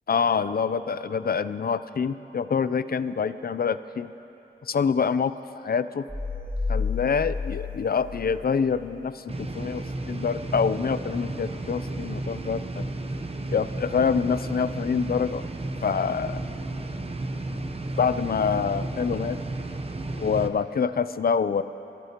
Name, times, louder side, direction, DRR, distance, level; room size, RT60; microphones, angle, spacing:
voice 1, 0.1-4.1 4.7-5.3 5.6-6.0 6.7-12.9 13.5-15.4 15.8-16.4 18.0-19.4 20.1-21.6, left 6 dB, 50° left, 13 dB, 0.5 m, -26 dB
sound 1, 6.1-9.0, left 4 dB, 5° left, 1.5 m, -31 dB
sound 2, 9.3-20.5, right 2 dB, 30° right, 0.8 m, -33 dB
26.5 x 14.0 x 3.0 m, 3.0 s
wide cardioid pair, 90°, 19 cm